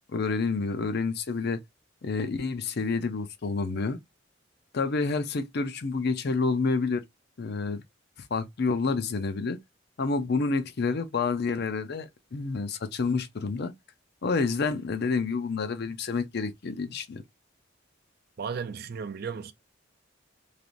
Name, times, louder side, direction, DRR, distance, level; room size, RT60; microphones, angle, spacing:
voice 1, 0.1-1.6 2.0-4.0 4.7-7.0 7.4-7.8 8.3-9.6 10.0-13.7 14.2-17.2, left 4 dB, 55° left, 0.5 m, -28 dB
voice 2, 18.4-19.5, right 6 dB, 50° right, 0.4 m, -34 dB
3.2 x 2.5 x 2.4 m
head